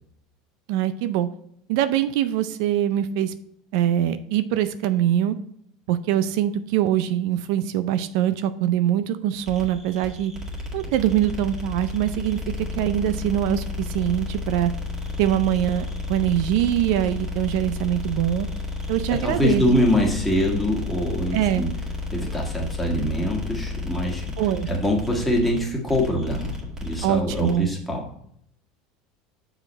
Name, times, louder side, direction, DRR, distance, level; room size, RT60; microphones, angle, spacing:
voice 1, 0.7-1.3 1.7-3.3 3.7-5.4 5.9-10.3 10.7-14.7 15.2-18.5 18.9-19.6 21.3-21.6 24.4-24.7 27.0-27.7, right 11 dB, 70° right, 12 dB, 0.4 m, -23 dB
sound 1, 9.4-27.6, left 3 dB, 25° right, 1.9 m, -32 dB
voice 2, 19.2-21.7 22.1-24.3 24.7-26.5 26.8-28.0, left 1 dB, 5° left, -1 dB, 1.6 m, -24 dB
6.2 x 5.0 x 4.1 m, 0.70 s
supercardioid pair, 125°, 3 cm